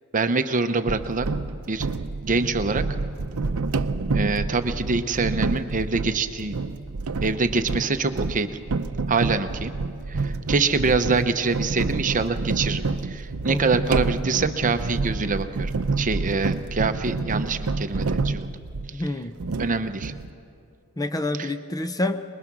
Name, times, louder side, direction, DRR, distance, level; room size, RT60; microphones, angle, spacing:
voice 1, 0.1-1.3 1.6-1.9 2.2-2.8 4.1-6.6 7.2-8.5 9.1-9.7 10.1-15.7 16.0-18.5 19.6-20.1 21.4-21.5, right 4 dB, 35° right, 9 dB, 0.7 m, -25 dB
sound 1, 0.9-19.0 19.4-20.3, right 3 dB, 70° right, 0.6 m, -28 dB
voice 2, 13.5-13.8 18.9-19.4 21.0-22.2, left 1 dB, 15° left, 9 dB, 0.5 m, -28 dB
24.0 x 21.5 x 6.1 m, 2.5 s
head